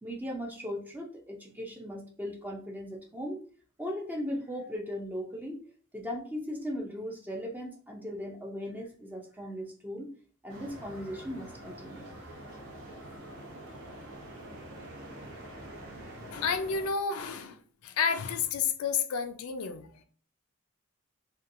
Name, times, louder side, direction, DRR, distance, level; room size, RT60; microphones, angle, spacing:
voice 1, 0.0-3.4 3.8-5.6 5.9-10.1 10.4-12.2 13.0-13.4, equal, 10° right, 0.4 m, -38 dB
sound 1, 10.5-16.9, right 1 dB, 70° right, 0.7 m, -45 dB
voice 2, 16.3-20.0, left 6 dB, 85° left, 0.4 m, -31 dB
2.8 x 2.3 x 2.5 m
head